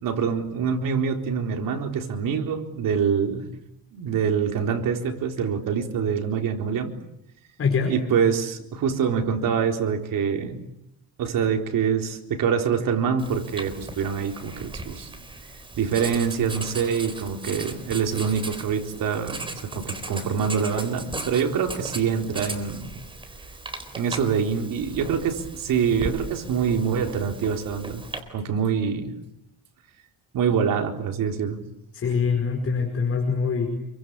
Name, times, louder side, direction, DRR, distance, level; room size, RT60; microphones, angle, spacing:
voice 1, 0.0-3.5 3.9-7.0 7.9-10.6 11.2-15.1 15.8-22.9 23.9-28.0 28.3-29.1 30.3-31.6, right 7 dB, 65° right, 3 dB, 4.1 m, -25 dB
voice 2, 7.6-8.0 31.9-33.7, left 5 dB, 40° left, 3 dB, 5.0 m, -24 dB
Writing, 13.2-28.2, right 2 dB, 15° right, 4.0 m, -37 dB
28.5 x 24.0 x 8.5 m, 0.83 s
cardioid pair, 155°, 36 cm